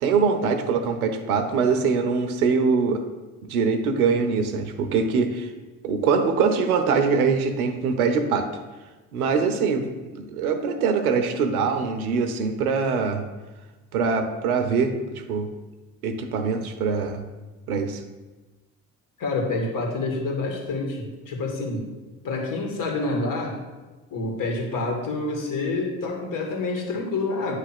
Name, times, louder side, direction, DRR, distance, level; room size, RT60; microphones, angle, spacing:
voice 1, 0.0-3.0 3.4-5.5 5.8-8.5 9.1-9.8 10.1-13.2 13.9-15.5 16.0-17.2 17.7-18.0, right 5 dB, 85° right, 8 dB, 0.8 m, -23 dB
voice 2, 19.2-21.9 22.2-23.6 24.1-27.6, left 3 dB, 50° left, 1 dB, 1.9 m, -27 dB
9.4 x 3.3 x 6.0 m, 1.2 s
hypercardioid pair, 70°, 43 cm